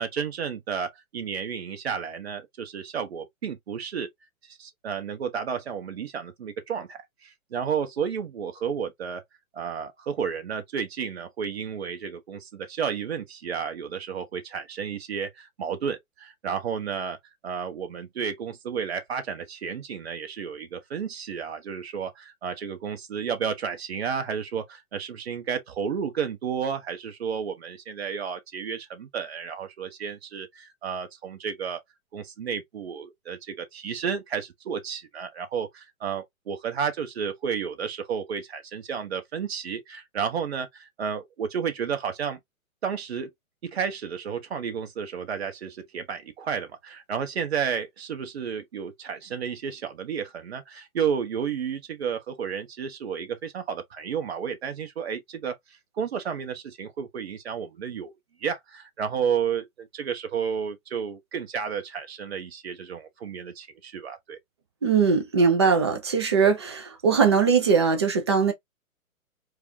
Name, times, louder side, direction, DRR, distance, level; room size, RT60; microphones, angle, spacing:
voice 1, 0.0-4.1 4.4-9.2 9.5-17.2 17.4-31.8 32.1-42.4 42.8-43.3 43.6-58.1 58.4-64.4, right 7 dB, 45° right, 1.1 m, -32 dB
voice 2, 64.8-68.5, right 5 dB, 20° right, 0.5 m, -21 dB
4.7 x 2.4 x 2.7 m
figure-of-eight pair, 125°, 43 cm